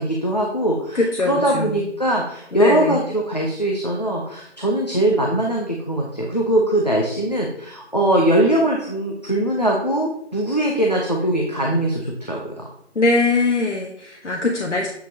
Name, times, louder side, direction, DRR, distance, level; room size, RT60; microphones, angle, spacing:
voice 1, 0.0-1.0 1.2-12.6, right 1 dB, 35° left, -1 dB, 0.7 m, -21 dB
voice 2, 0.9-1.9 2.5-3.0 12.9-14.9, left 3 dB, 80° left, 0 dB, 1.1 m, -21 dB
8.0 x 5.0 x 2.8 m, 0.73 s
figure-of-eight pair, 180°, 35 cm